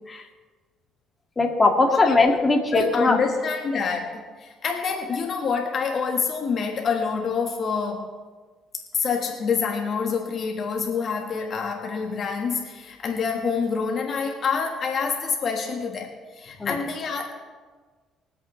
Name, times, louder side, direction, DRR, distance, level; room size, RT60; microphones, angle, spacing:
voice 1, 1.4-3.2 16.6-16.8, left 3 dB, 25° left, 1 dB, 1.9 m, -20 dB
voice 2, 2.7-8.1 8.9-17.3, left 5 dB, 55° left, 2 dB, 1.4 m, -27 dB
22.5 x 8.3 x 3.2 m, 1.4 s
supercardioid pair, 80°, 0 cm